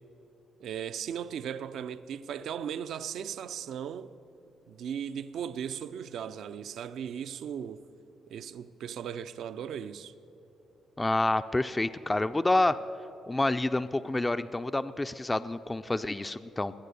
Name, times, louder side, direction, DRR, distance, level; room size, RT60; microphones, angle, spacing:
voice 1, 0.6-4.1 4.7-7.8 8.3-10.1, right 8 dB, 70° right, 0.5 m, -37 dB
voice 2, 11.0-12.8 13.3-16.7, left 2 dB, 20° left, 0.4 m, -28 dB
20.5 x 8.2 x 6.9 m
supercardioid pair, 65°, 0 cm